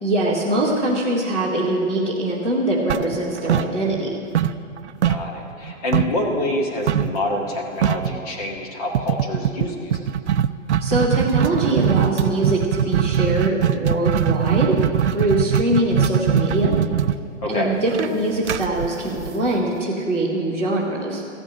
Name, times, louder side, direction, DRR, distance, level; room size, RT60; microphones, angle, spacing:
voice 1, 0.0-4.1 10.8-14.8 15.1-16.8 17.5-21.2, right 1 dB, 10° left, -8 dB, 0.6 m, -22 dB
sound 1, 2.9-4.1 4.3-6.2 6.9-7.2 7.5-7.6 7.8-8.2 8.9-19.7, right 9 dB, 60° right, 0.5 m, -21 dB
voice 2, 5.0-10.0 17.4-17.7, left 1 dB, 30° left, -1 dB, 1.7 m, -26 dB
14.5 x 6.2 x 9.3 m, 2.3 s
hypercardioid pair, 175°, 39 cm